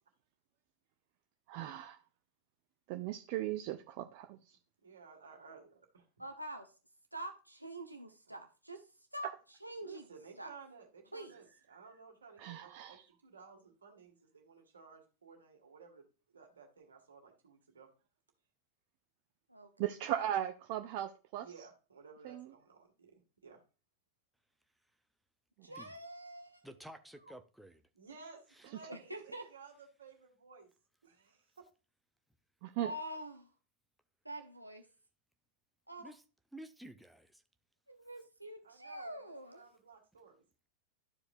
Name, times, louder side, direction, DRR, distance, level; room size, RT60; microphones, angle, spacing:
voice 1, 1.5-2.0 2.9-4.6 12.4-13.0 19.8-21.5 22.2-22.5 32.6-32.9, right 12 dB, 45° right, 0.5 m, -38 dB
voice 2, 4.8-6.1 9.8-17.9 21.4-23.6 27.9-30.7 31.0-31.7 38.6-40.4, right 5 dB, 70° right, 1.9 m, -56 dB
voice 3, 6.2-6.7 7.1-8.9 9.1-10.0 10.4-10.5 11.1-11.3 19.5-19.9 25.6-26.7 28.9-29.5 32.8-33.5 34.2-34.9 35.9-36.1 37.9-39.6, right 1 dB, 85° right, 0.7 m, -45 dB
voice 4, 26.6-27.8 28.5-28.7 36.0-36.2 36.5-37.4, right 1 dB, ahead, 0.6 m, -52 dB
12.5 x 4.8 x 2.6 m
figure-of-eight pair, 90°, 0 cm